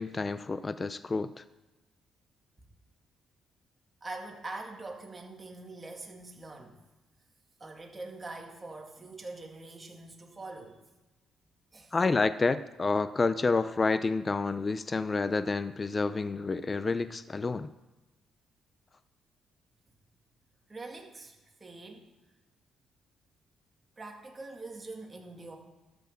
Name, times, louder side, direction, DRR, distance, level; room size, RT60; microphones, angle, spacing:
voice 1, 0.0-1.4 11.9-17.7, left 3 dB, 30° left, 13 dB, 0.5 m, -29 dB
voice 2, 4.0-6.8 7.6-10.8 11.7-11.9 20.7-22.1 24.0-25.6, right 2 dB, 25° right, 1 dB, 2.3 m, -44 dB
12.5 x 6.3 x 7.0 m, 1.1 s
cardioid pair, 90°, 0 cm